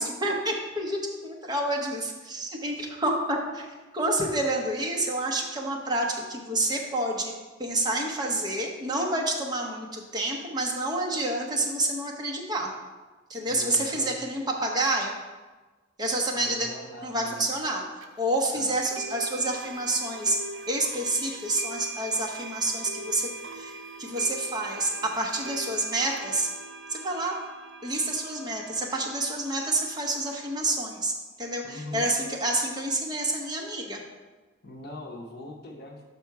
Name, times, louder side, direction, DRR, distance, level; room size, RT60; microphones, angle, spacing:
voice 1, 0.0-7.3 7.6-12.7 13.3-15.2 16.0-16.7 17.0-17.8 18.2-20.4 20.7-23.7 24.0-26.5 26.9-27.4 27.8-31.1 31.4-34.0, right 2 dB, 20° right, 0 dB, 0.9 m, -28 dB
voice 2, 13.5-14.2 16.3-17.4 18.5-18.7 31.6-32.1 34.6-36.0, left 2 dB, 50° left, 1 dB, 0.8 m, -41 dB
sound 1, 18.0-18.1 19.0-30.5, right 3 dB, 70° right, 0.6 m, -41 dB
5.7 x 5.2 x 4.6 m, 1.3 s
head